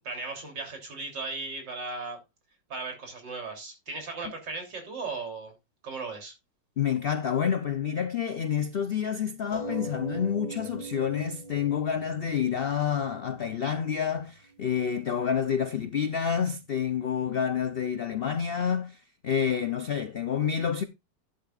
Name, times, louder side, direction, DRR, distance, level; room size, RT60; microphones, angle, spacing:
voice 1, 0.0-2.2 2.7-5.5 5.8-6.3, right 3 dB, 75° right, 4.0 m, -37 dB
voice 2, 6.8-20.8, left 7 dB, 85° left, 0.5 m, -28 dB
sound 1, 9.5-14.5 15.3-15.4 15.7-15.8, right 1 dB, 70° left, 2.6 m, -41 dB
11.5 x 10.5 x 2.5 m
omnidirectional pair, 2.0 m